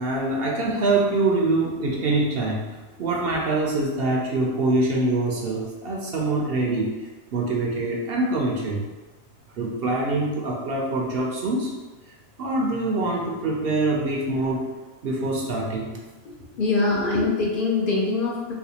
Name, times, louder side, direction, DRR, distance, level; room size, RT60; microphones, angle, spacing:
voice 1, 0.0-2.6 3.0-6.9 7.3-8.8 9.6-11.7 12.4-14.7 15.0-15.9, right 2 dB, 65° right, -2 dB, 0.7 m, -24 dB
voice 2, 16.5-18.5, left 3 dB, 55° left, -3 dB, 0.6 m, -23 dB
4.1 x 2.3 x 2.8 m, 1.2 s
omnidirectional pair, 1.2 m